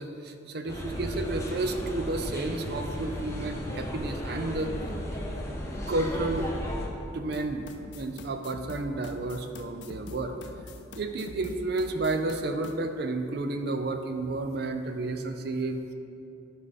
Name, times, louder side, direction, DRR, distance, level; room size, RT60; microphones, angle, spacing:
voice 1, 0.0-4.7 5.9-6.5 7.1-7.7 7.9-10.4 11.0-15.8, right 2 dB, 55° right, 7 dB, 0.5 m, -31 dB
sound 1, 0.7-6.9, equal, 15° left, 0.7 m, -35 dB
sound 2, 7.3-12.7, left 3 dB, 65° left, 0.4 m, -44 dB
10.5 x 4.0 x 4.1 m, 2.7 s
head